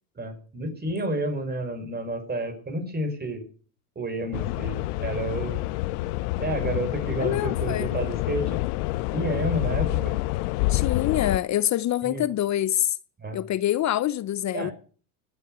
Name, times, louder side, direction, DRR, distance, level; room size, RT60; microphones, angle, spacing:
voice 1, 0.2-3.4 4.0-5.7 6.4-8.6 9.1-10.1 12.0-12.2 13.2-13.4 14.5-14.7, right 1 dB, 20° right, 5.8 m, -30 dB
sound 1, 4.3-11.4, left 18 dB, 70° left, 0.9 m, -27 dB
voice 2, 7.2-7.9 10.7-12.9 13.3-14.7, left 12 dB, 35° left, 0.7 m, -25 dB
20.5 x 8.1 x 8.0 m
supercardioid pair, 100°, 47 cm